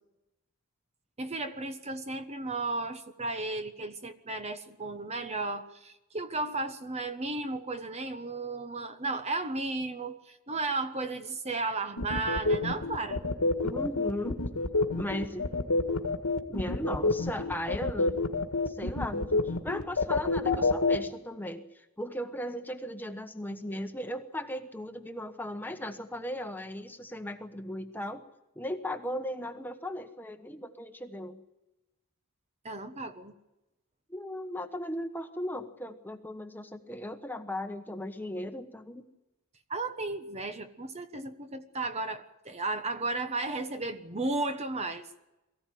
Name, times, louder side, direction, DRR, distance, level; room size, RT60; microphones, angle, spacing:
voice 1, 1.2-13.2 32.6-33.3 39.7-45.0, right 2 dB, 30° right, 9 dB, 1.2 m, -34 dB
sound 1, 12.0-21.0, left 3 dB, 85° left, 1.9 m, -27 dB
voice 2, 13.6-14.4 14.9-15.5 16.5-18.3 18.7-21.7 22.0-28.2 28.6-31.4 34.1-39.0, left 1 dB, 10° left, 7 dB, 1.2 m, -37 dB
23.0 x 15.5 x 9.3 m, 0.98 s
head